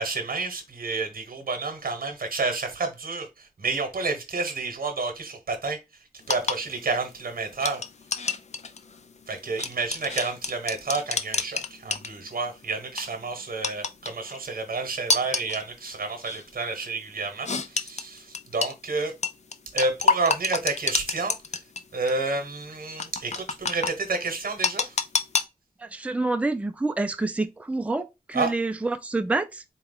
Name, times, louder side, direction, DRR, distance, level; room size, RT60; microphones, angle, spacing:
voice 1, 0.0-5.8 6.3-7.8 9.3-19.1 19.7-21.3 21.9-24.9 28.3-28.5, right 3 dB, 75° right, 1.0 m, -30 dB
sound 1, 6.2-12.5 12.8-13.1 13.6-14.4 15.1-15.6 16.2-16.4 17.5-18.7 19.2-21.8 22.1-22.2 23.0-23.9 24.6-25.4, left 4 dB, 50° left, 0.5 m, -27 dB
voice 2, 25.8-29.6, right 2 dB, 10° right, 0.4 m, -27 dB
4.1 x 2.3 x 3.7 m
wide cardioid pair, 60°, 15 cm